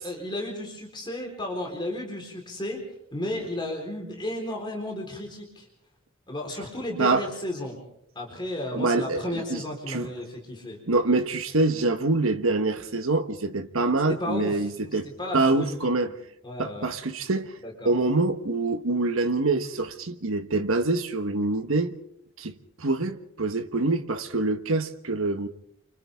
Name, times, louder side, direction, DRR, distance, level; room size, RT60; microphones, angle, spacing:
voice 1, 0.0-5.7 6.3-7.8 8.1-10.8 14.2-16.2 16.4-16.9 17.6-17.9, left 1 dB, 20° left, 4.0 m, -34 dB
voice 2, 8.7-10.1 10.9-15.1 15.3-16.1 16.6-17.6 17.8-21.9 22.4-25.5, right 2 dB, 70° right, 1.3 m, -25 dB
28.5 x 26.0 x 3.6 m
head